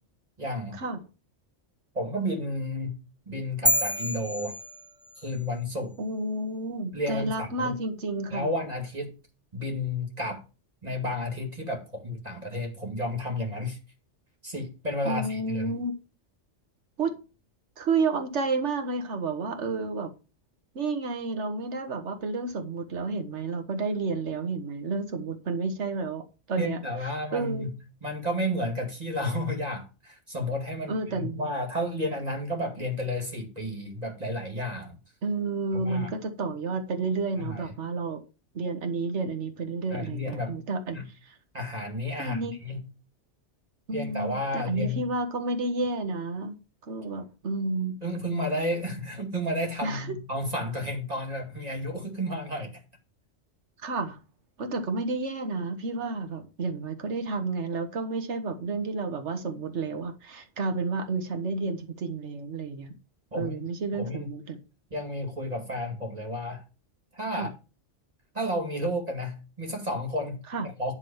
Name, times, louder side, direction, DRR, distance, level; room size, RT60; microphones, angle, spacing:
voice 1, 0.4-0.8 1.9-3.0 3.3-4.6 5.2-6.0 6.9-7.8 8.3-9.1 9.5-10.4 10.8-13.8 14.4-15.7 26.6-27.7 28.0-34.9 35.7-36.1 37.4-37.7 39.9-40.5 40.9-41.0 41.5-42.8 43.9-45.1 48.0-52.8 63.3-63.6 63.9-64.3 64.9-66.6 67.1-67.5 68.3-70.9, left 1 dB, 35° right, 2.4 m, -32 dB
sound 1, 3.7-5.4, left 1 dB, 5° right, 0.5 m, -28 dB
voice 2, 6.0-8.5 15.0-15.9 17.0-17.2 17.8-20.1 20.7-26.2 26.5-26.8 27.3-27.7 30.9-31.5 35.2-38.2 38.5-41.4 42.2-42.6 43.9-46.5 46.9-48.0 49.8-50.2 53.8-54.2 54.6-62.9 63.3-64.6 67.3-67.5 70.5-70.7, right 3 dB, 70° right, 1.6 m, -31 dB
11.0 x 3.8 x 7.1 m
omnidirectional pair, 1.2 m